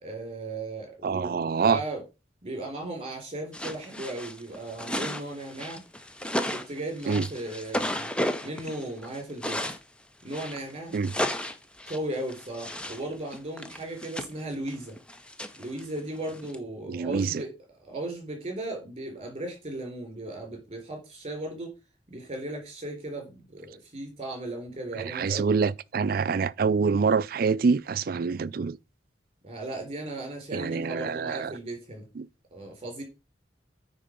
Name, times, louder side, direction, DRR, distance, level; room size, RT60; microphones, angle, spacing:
voice 1, 0.0-2.0 2.4-5.8 6.5-8.1 8.4-9.7 10.2-10.9 11.9-15.0 15.6-17.5 17.8-21.7 22.1-25.5 29.4-32.1 32.5-33.0, right 1 dB, 35° right, 3.8 m, -36 dB
voice 2, 1.0-1.8 7.1-7.3 10.9-11.1 16.9-17.4 25.0-28.8 30.5-31.5 32.2-32.3, right 5 dB, 55° right, 0.4 m, -26 dB
sound 1, 3.5-9.8 10.3-13.0 13.3-16.6, left 1 dB, 5° left, 0.6 m, -34 dB
9.4 x 3.8 x 5.1 m
head